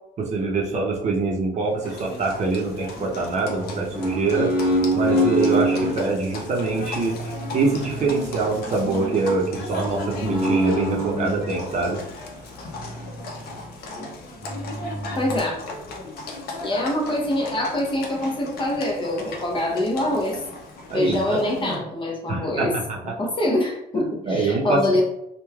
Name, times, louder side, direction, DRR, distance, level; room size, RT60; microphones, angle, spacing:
voice 1, 0.2-4.5 4.9-12.0 20.9-21.8 22.3-23.1 23.9-25.0, right 3 dB, 40° right, -1 dB, 0.6 m, -25 dB
Livestock farm animals working animals, 1.8-21.7, left 2 dB, 65° left, 0.6 m, -37 dB
sound 1, 1.8-3.0 3.5-6.0 6.5-11.6 12.4-13.6 14.0-14.1 14.4-15.4, right 1 dB, 10° right, 0.9 m, -27 dB
voice 2, 15.2-15.6 16.6-20.4 20.9-22.7 23.2-25.0, left 1 dB, 30° left, -1 dB, 0.7 m, -24 dB
3.0 x 2.2 x 2.3 m, 0.81 s
cardioid pair, 110°, 17 cm